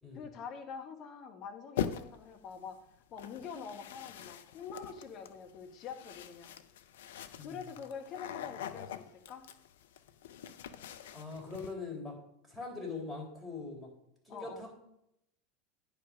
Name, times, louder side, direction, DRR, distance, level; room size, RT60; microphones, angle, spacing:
voice 1, 0.1-2.8 3.1-6.5 7.4-9.4 14.3-14.7, left 6 dB, 40° left, 5 dB, 1.4 m, -45 dB
sound 1, 1.8-2.3 3.2-11.7, left 9 dB, 65° left, 0.5 m, -43 dB
voice 2, 11.1-12.2 12.5-13.9 14.3-14.7, left 3 dB, ahead, -1 dB, 3.7 m, -42 dB
9.7 x 5.1 x 5.3 m, 0.77 s
figure-of-eight pair, 80°, 0 cm